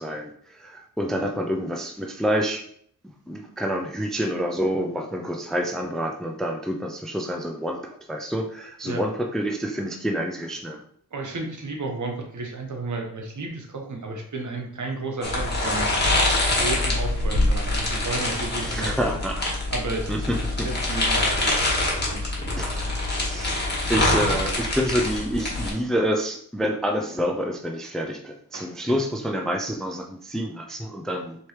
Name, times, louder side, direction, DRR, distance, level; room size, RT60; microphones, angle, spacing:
voice 1, 0.0-2.6 3.3-7.8 8.1-10.8 18.6-19.4 20.1-20.7 22.6-31.4, equal, ahead, 3 dB, 0.5 m, -28 dB
voice 2, 11.1-15.9 16.5-19.2 19.7-20.3 20.6-21.7 22.1-23.0 28.5-29.0, right 2 dB, 55° right, 2 dB, 1.1 m, -33 dB
sound 1, 15.2-25.7, left 2 dB, 30° left, 1.7 m, -25 dB
4.5 x 3.0 x 3.2 m, 0.64 s
cardioid pair, 55°, 36 cm